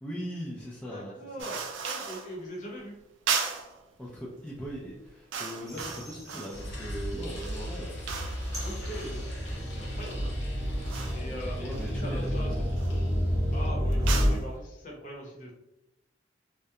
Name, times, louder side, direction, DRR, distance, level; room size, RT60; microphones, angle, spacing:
voice 1, 0.0-1.1 4.0-8.3 8.9-9.1 11.7-12.7, equal, 5° left, -6 dB, 0.3 m, -39 dB
voice 2, 0.9-3.0 8.6-10.3 11.1-12.5 13.5-15.5, equal, 40° left, -3 dB, 0.7 m, -41 dB
sound 1, 1.4-2.4 3.3-3.8 4.5-4.7 5.0-6.7 7.2-10.2 10.8-11.3 11.7-12.3 12.7-13.0 13.9-14.5, right 6 dB, 90° right, 0.4 m, -36 dB
sound 2, 5.7-7.3 7.7-14.3, equal, 20° right, 0.8 m, -30 dB
sound 3, 6.5-13.7, equal, 75° left, 0.7 m, -38 dB
2.3 x 2.1 x 2.7 m, 0.89 s
head